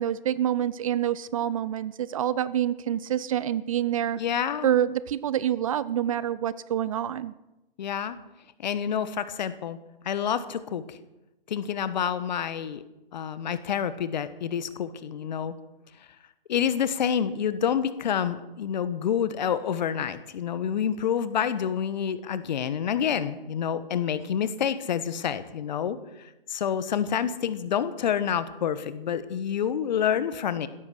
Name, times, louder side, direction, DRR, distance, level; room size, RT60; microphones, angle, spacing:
voice 1, 0.0-4.2 4.6-7.3, right 10 dB, 35° right, 18 dB, 0.5 m, -27 dB
voice 2, 4.2-4.7 7.8-8.2 8.6-9.8 10.0-11.0 11.5-12.8 13.1-15.5 16.5-26.0 26.5-30.7, left 8 dB, 50° left, 14 dB, 1.3 m, -28 dB
16.0 x 13.5 x 6.3 m, 1.0 s
figure-of-eight pair, 125°, 29 cm